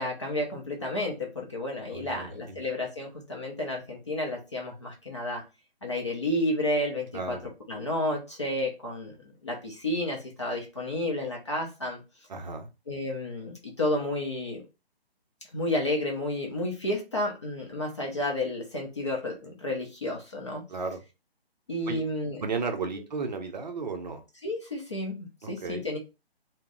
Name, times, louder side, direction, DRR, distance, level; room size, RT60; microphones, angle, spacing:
voice 1, 0.0-5.4 5.8-7.4 7.7-12.0 12.9-14.6 15.5-20.6 21.7-22.4 24.4-26.0, left 1 dB, 30° left, -1 dB, 0.4 m, -31 dB
voice 2, 1.9-2.6 7.1-7.5 12.3-12.7 20.7-21.0 21.9-22.0 22.4-24.2 25.4-25.8, right 4 dB, 45° right, 5 dB, 0.6 m, -34 dB
2.2 x 2.0 x 3.7 m, 0.27 s
figure-of-eight pair, 145°, 32 cm